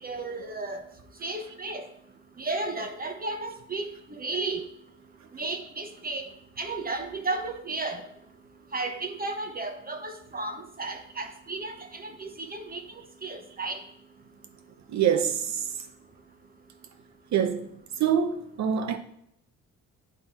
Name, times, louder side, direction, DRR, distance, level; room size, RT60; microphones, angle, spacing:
voice 1, 0.0-0.8 1.2-1.9 2.4-4.6 5.3-6.3 6.6-8.0 8.7-12.8 13.2-13.8, right 3 dB, 30° right, 1.1 m, -33 dB
voice 2, 14.9-15.7 17.3-17.7 18.0-19.0, right 8 dB, 65° right, 1.0 m, -25 dB
9.3 x 4.2 x 4.3 m
cardioid pair, 90°, 30 cm